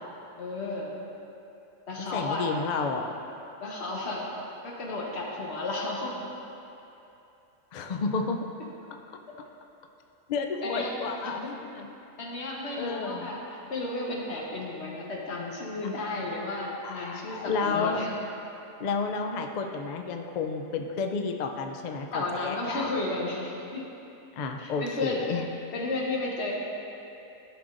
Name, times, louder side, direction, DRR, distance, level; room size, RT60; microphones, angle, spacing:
voice 1, 0.4-1.0 1.9-2.5 3.6-4.3 4.6-6.3 10.6-10.9 11.2-11.3 12.2-18.2 22.1-23.8 24.6-26.5, left 2 dB, 55° left, -3 dB, 1.3 m, -33 dB
voice 2, 2.0-3.1 7.7-8.4 10.3-11.9 12.8-13.3 16.8-18.1 18.8-22.9 24.4-25.5, left 4 dB, 75° left, 4 dB, 0.4 m, -31 dB
12.5 x 6.2 x 2.6 m, 2.9 s
omnidirectional pair, 1.4 m